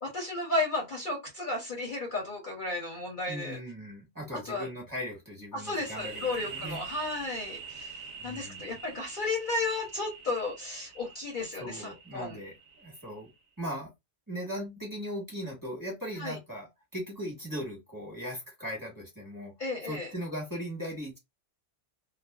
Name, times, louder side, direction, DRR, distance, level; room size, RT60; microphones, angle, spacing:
voice 1, 0.0-3.6 4.5-4.7 5.5-8.0 8.2-12.4 16.2-16.4 19.6-20.1, left 2 dB, 50° left, 0.8 m, -33 dB
voice 2, 3.3-6.8 8.2-8.8 11.5-13.3 13.6-13.9 14.3-19.5 19.8-21.2, equal, 15° right, 1.1 m, -38 dB
sound 1, 5.8-13.3, right 5 dB, 70° right, 0.9 m, -45 dB
2.4 x 2.2 x 2.3 m
omnidirectional pair, 1.3 m